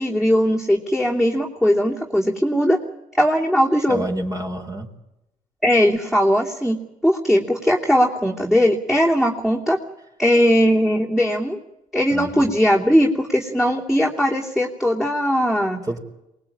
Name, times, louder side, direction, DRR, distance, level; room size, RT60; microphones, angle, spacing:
voice 1, 0.0-2.8 3.1-4.0 5.6-6.8 7.0-9.8 10.2-11.6 11.9-15.8, equal, ahead, -2 dB, 3.1 m, -19 dB
voice 2, 3.9-4.9 12.1-12.5 15.8-16.0, right 1 dB, 25° right, 3 dB, 4.0 m, -28 dB
24.0 x 20.0 x 8.8 m, 0.89 s
supercardioid pair, 70°, 15 cm